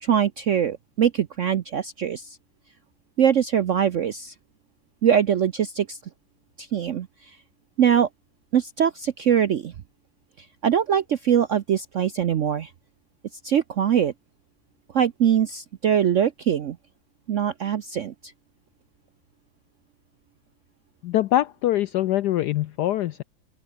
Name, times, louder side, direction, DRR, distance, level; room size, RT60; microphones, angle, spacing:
voice 1, 0.0-2.4 3.2-4.3 5.0-6.0 6.6-7.1 7.8-8.1 8.5-9.7 10.6-12.7 13.4-14.1 14.9-16.8 17.3-18.3, right 9 dB, 75° right, 0.6 m, -22 dB
voice 2, 21.0-23.2, left 13 dB, 75° left, 0.9 m, -23 dB
open air
omnidirectional pair, 2.2 m